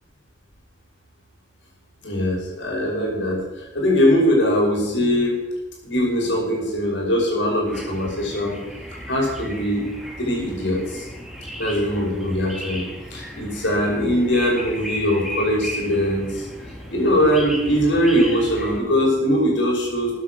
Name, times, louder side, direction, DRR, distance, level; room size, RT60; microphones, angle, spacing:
voice 1, 2.0-5.4 5.8-8.6 9.1-9.9 10.2-11.1 11.6-12.8 13.1-16.5 16.9-20.1, equal, 80° left, -2 dB, 5.8 m, -21 dB
sound 1, 7.7-18.8, equal, ahead, 2.5 m, -35 dB
14.0 x 9.7 x 6.2 m, 1.1 s
head